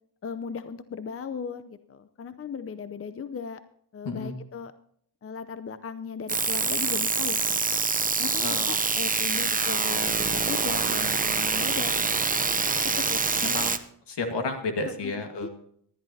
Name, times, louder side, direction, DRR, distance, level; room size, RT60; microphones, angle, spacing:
voice 1, 0.2-3.6 3.9-4.7 5.2-7.6 8.2-12.3 13.0-13.2 15.0-15.1 15.4-15.5, left 6 dB, 35° left, 12 dB, 0.7 m, -37 dB
sound 1, 6.3-13.8, right 4 dB, 20° right, 0.8 m, -25 dB
voice 2, 8.4-8.8 13.4-13.8 14.1-15.5, left 3 dB, 80° left, 4 dB, 1.9 m, -31 dB
18.5 x 11.0 x 2.8 m, 0.66 s
cardioid pair, 70°, 41 cm